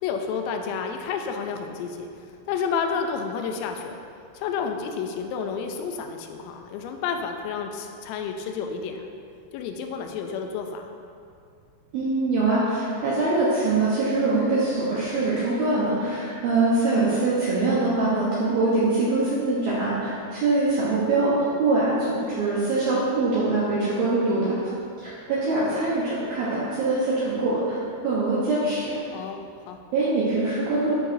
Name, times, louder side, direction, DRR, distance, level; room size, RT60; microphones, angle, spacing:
voice 1, 0.0-2.1 2.5-4.0 4.3-9.1 9.5-10.9 16.0-16.3 29.1-29.8, left 6 dB, 90° left, 5 dB, 3.2 m, -30 dB
voice 2, 11.9-21.3 21.6-24.6 25.0-27.8 28.0-29.0 29.9-31.0, right 2 dB, 75° right, -9 dB, 2.2 m, -23 dB
13.0 x 4.8 x 2.7 m, 2.4 s
omnidirectional pair, 5.8 m